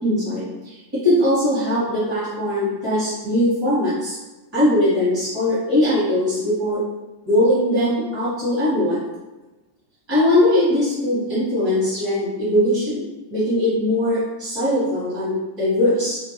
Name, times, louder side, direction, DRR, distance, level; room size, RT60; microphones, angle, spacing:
voice 1, 0.0-4.2 4.5-6.8 7.2-9.0 10.1-13.0 13.3-16.2, left 1 dB, 30° right, -13 dB, 1.3 m, -20 dB
2.8 x 2.6 x 2.8 m, 1.1 s
supercardioid pair, 165°, 0 cm